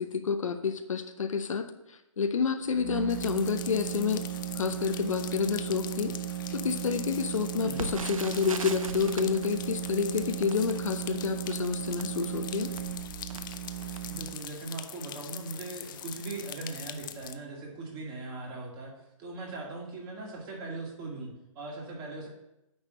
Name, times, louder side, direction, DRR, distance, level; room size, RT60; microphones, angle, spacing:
voice 1, 0.0-1.7 2.2-4.2 4.5-6.1 6.5-12.7, left 6 dB, 70° left, 8 dB, 0.8 m, -29 dB
sound 1, 2.7-14.4, right 12 dB, 40° right, 0.4 m, -36 dB
sound 2, 3.1-17.3, left 10 dB, 40° left, 0.5 m, -43 dB
Crackle, 7.7-14.7 15.3-15.4 15.7-15.9 16.5-16.8 17.0-17.1, right 4 dB, 80° right, 0.7 m, -42 dB
voice 2, 14.1-22.3, right 3 dB, 25° right, -1 dB, 2.0 m, -40 dB
9.5 x 3.3 x 6.5 m, 0.88 s
figure-of-eight pair, 135°, 17 cm